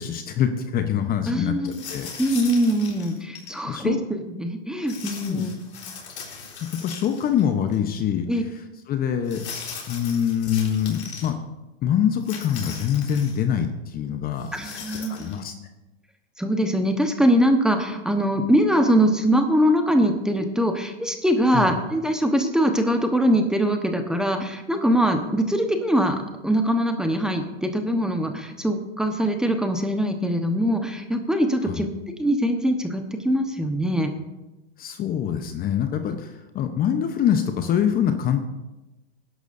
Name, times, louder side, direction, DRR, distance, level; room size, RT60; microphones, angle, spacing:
voice 1, 0.0-2.1 3.6-4.0 5.0-5.5 6.7-8.3 8.9-9.4 9.9-11.4 11.8-14.5 15.1-15.5 21.5-21.7 31.6-31.9 34.8-38.4, left 9 dB, 25° left, 7 dB, 0.9 m, -24 dB
voice 2, 1.3-1.8 2.2-5.5 8.3-8.4 14.5-15.4 16.4-31.9 32.2-34.1, equal, ahead, 5 dB, 1.1 m, -22 dB
sound 1, 1.6-3.6 4.9-7.4 7.7-7.8 9.2-11.3 12.2-13.4 14.4-15.4, left 5 dB, 80° left, 4.1 m, -39 dB
19.0 x 11.0 x 2.7 m, 1.0 s
hypercardioid pair, 120°, 33 cm